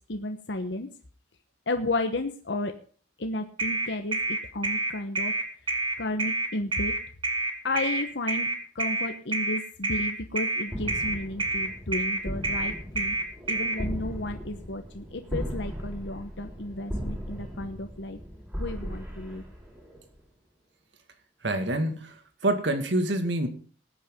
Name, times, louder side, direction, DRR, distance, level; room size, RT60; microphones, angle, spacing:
voice 1, 0.1-0.9 1.7-2.7 3.2-4.2 4.5-5.3 6.0-6.9 7.6-8.5 8.8-13.1 13.5-18.2 18.6-19.4, left 2 dB, 70° left, 6 dB, 1.1 m, -32 dB
sound 1, 3.6-13.8, right 2 dB, 30° right, 2.1 m, -28 dB
sound 2, 10.7-20.2, equal, 10° right, 4.9 m, -37 dB
voice 2, 21.4-22.1 22.4-23.5, right 1 dB, 70° right, 7 dB, 2.1 m, -26 dB
20.0 x 8.7 x 3.7 m, 0.42 s
head